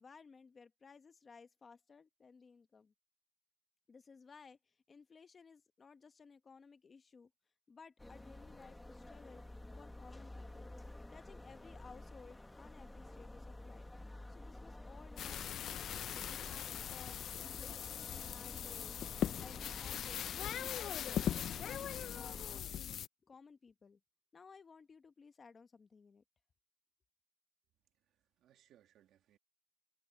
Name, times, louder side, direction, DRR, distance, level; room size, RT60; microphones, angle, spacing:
voice 1, 0.0-2.9 3.9-7.3 7.7-9.4 9.8-10.7 11.1-13.9 14.3-19.0 19.4-20.7 21.3-24.0 24.3-26.2, left 5 dB, 40° left, 1.1 m, -58 dB
sound 1, 8.0-22.6, left 1 dB, 10° left, 1.4 m, -51 dB
sound 2, 15.2-23.1, left 10 dB, 70° left, 0.5 m, -40 dB
voice 2, 28.0-29.4, right 11 dB, 80° right, 2.2 m, -69 dB
cardioid pair, 90°, 0 cm